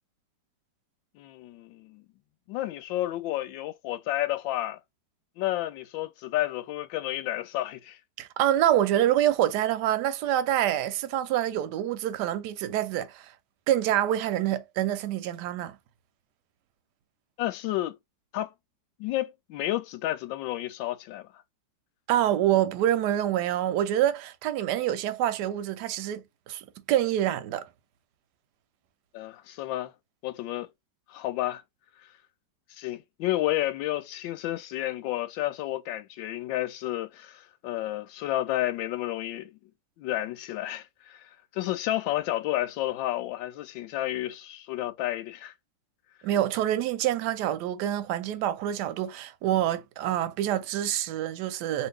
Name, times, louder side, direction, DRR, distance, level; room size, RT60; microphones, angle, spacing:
voice 1, 1.2-2.0 2.5-4.8 5.4-8.0 17.4-18.0 18.3-18.5 19.0-21.3 29.1-29.9 30.2-30.7 31.1-31.6 32.7-39.6 40.0-45.5, left 15 dB, 85° left, 1.3 m, -31 dB
voice 2, 8.2-13.3 13.7-15.8 22.1-27.7 46.2-51.9, right 12 dB, 75° right, 1.1 m, -26 dB
2.9 x 2.7 x 3.1 m
omnidirectional pair, 2.0 m